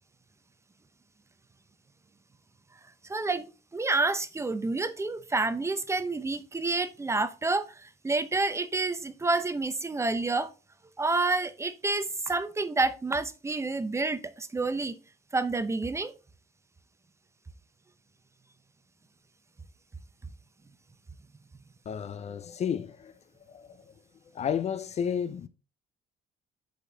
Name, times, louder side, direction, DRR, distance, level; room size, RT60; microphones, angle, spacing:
voice 1, 3.0-10.5 11.0-15.0 15.3-16.1, right 3 dB, 15° right, 0.7 m, -29 dB
voice 2, 21.9-23.1 23.5-23.8 24.3-25.5, left 8 dB, 40° left, 0.5 m, -32 dB
6.5 x 5.1 x 3.8 m
cardioid pair, 110°, 17 cm